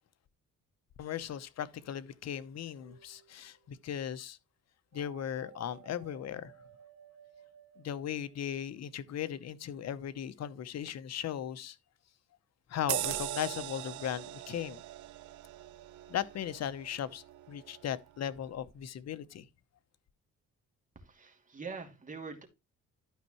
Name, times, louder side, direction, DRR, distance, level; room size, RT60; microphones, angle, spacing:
voice 1, 1.0-4.4 4.9-6.5 7.8-11.8 12.7-14.8 16.1-19.5, left 10 dB, 60° left, 0.9 m, -37 dB
sound 1, 2.8-3.5 4.9-8.7, right 9 dB, 50° right, 1.8 m, -56 dB
sound 2, 12.9-17.9 18.3-18.5, right 15 dB, 75° right, 0.6 m, -40 dB
voice 2, 20.9-22.5, right 4 dB, 25° right, 2.8 m, -44 dB
12.5 x 5.5 x 3.0 m
cardioid pair, 90°, 30 cm